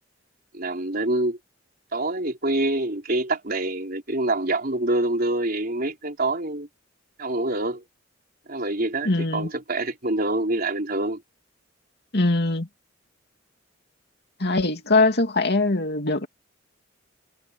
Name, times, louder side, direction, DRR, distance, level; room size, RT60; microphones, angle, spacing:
voice 1, 0.5-1.4 1.9-6.7 7.2-7.8 8.5-11.2, right 2 dB, 50° right, 4.4 m, -26 dB
voice 2, 9.0-9.5 12.1-12.7 14.4-16.3, left 2 dB, 55° left, 2.6 m, -22 dB
head